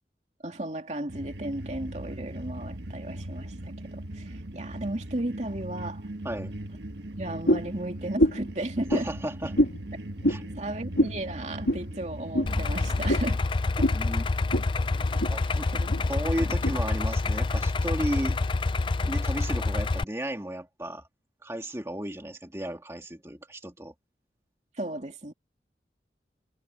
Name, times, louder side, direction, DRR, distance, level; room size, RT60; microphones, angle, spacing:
voice 1, 0.4-6.1 7.2-9.1 10.5-13.4 13.8-13.9 15.4-16.1 16.4-16.5 24.7-25.3, right 1 dB, 40° right, 2.8 m, -35 dB
sound 1, 1.1-13.1, right 1 dB, 80° right, 1.6 m, -39 dB
sound 2, 7.5-7.7 8.2-8.5 8.9-9.1 9.6-9.8 10.2-10.4 11.0-11.2 11.7-11.8 12.3-12.5 13.1-13.3 13.8-14.0 14.5-14.7 15.0-15.4 15.9-16.0 16.6-16.7, equal, 85° left, 2.7 m, -24 dB
voice 2, 8.9-9.6 10.3-10.4 13.9-14.3 15.3-15.7 16.1-18.4 19.0-21.1 21.4-23.9, right 1 dB, 15° right, 2.3 m, -34 dB
Idling, 12.5-20.0, left 3 dB, 30° left, 0.4 m, -27 dB
head